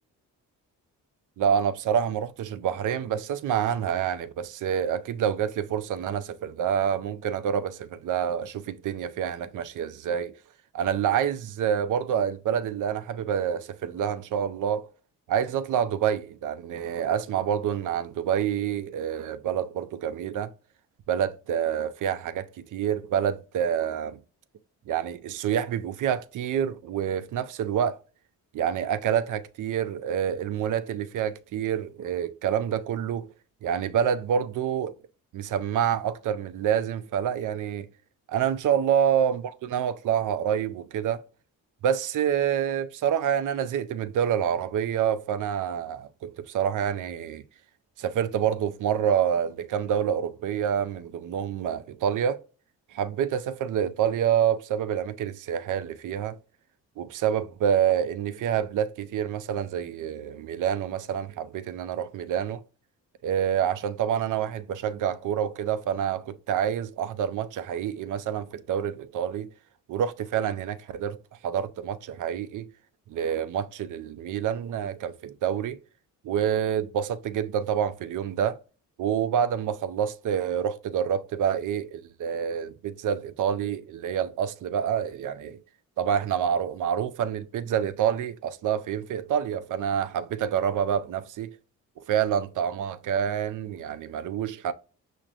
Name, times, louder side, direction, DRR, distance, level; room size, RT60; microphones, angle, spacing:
voice 1, 1.4-10.4 10.7-14.9 15.3-20.5 21.1-24.2 24.9-28.0 28.5-33.3 33.6-34.9 35.3-37.9 38.3-41.2 41.8-47.4 48.0-52.4 52.9-56.4 57.0-62.6 63.2-69.5 69.9-71.2 71.4-72.7 73.1-75.8 76.2-78.6 79.0-85.6 86.0-91.5 92.1-94.7, right 8 dB, 55° right, 0.5 m, -27 dB
6.0 x 2.1 x 2.5 m
supercardioid pair, 60°, 36 cm